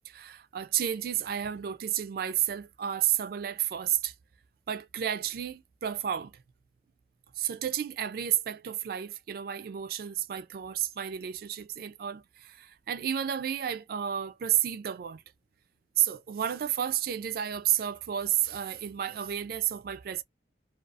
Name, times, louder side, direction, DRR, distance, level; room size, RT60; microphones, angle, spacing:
voice 1, 0.1-4.1 4.7-6.3 7.4-15.2 16.0-20.2, right 10 dB, 55° right, 0.3 m, -31 dB
2.4 x 2.3 x 2.6 m
head